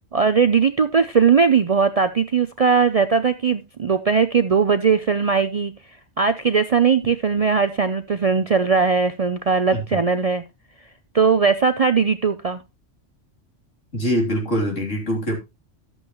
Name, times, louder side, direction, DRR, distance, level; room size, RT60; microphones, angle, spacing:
voice 1, 0.1-5.7 6.2-10.4 11.1-12.6, right 5 dB, 50° right, 11 dB, 0.4 m, -19 dB
voice 2, 9.7-10.0 13.9-15.4, equal, 85° left, 1 dB, 3.6 m, -23 dB
12.5 x 8.0 x 3.0 m, 0.24 s
omnidirectional pair, 1.3 m